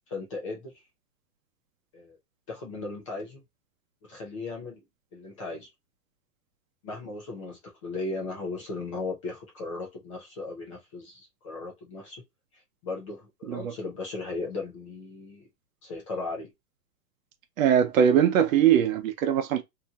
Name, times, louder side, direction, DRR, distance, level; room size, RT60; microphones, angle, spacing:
voice 1, 0.1-0.7 1.9-2.2 2.5-3.4 4.1-4.8 5.1-5.7 6.8-12.2 12.8-15.5 15.8-16.5, left 3 dB, 20° left, 0.5 m, -36 dB
voice 2, 17.6-19.6, right 9 dB, 55° right, 0.8 m, -21 dB
2.9 x 2.6 x 2.3 m
hypercardioid pair, 150°, 47 cm